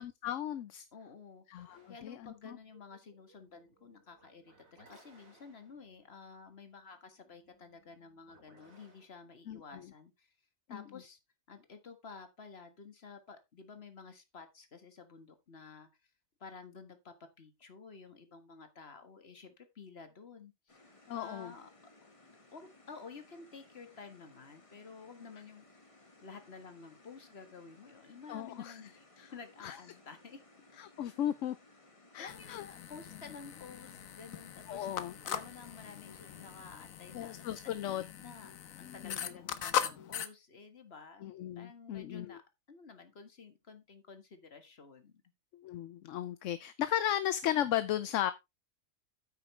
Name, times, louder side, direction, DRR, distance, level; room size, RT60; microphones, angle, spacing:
voice 1, 0.0-0.8 1.5-2.6 9.5-9.6 10.7-10.8 21.1-21.5 28.3-28.8 29.2-29.3 29.6-29.8 30.8-31.6 32.1-32.6 34.7-35.1 37.1-38.0 39.0-39.2 41.2-42.3 45.5-48.3, left 11 dB, 70° left, 1.0 m, -35 dB
voice 2, 0.9-10.3 10.7-11.2 11.5-16.1 16.4-20.8 21.1-21.7 22.5-25.7 26.0-30.4 31.1-31.2 32.1-34.9 35.2-38.5 38.8-41.3 41.6-42.4 42.7-45.2, left 5 dB, 50° left, 1.8 m, -52 dB
sound 1, 1.6-9.1, right 1 dB, 80° right, 3.7 m, -65 dB
sound 2, 20.7-36.6, left 2 dB, 25° left, 1.6 m, -61 dB
sound 3, 32.3-40.3, left 9 dB, 85° left, 1.3 m, -40 dB
9.3 x 8.8 x 3.3 m
omnidirectional pair, 1.4 m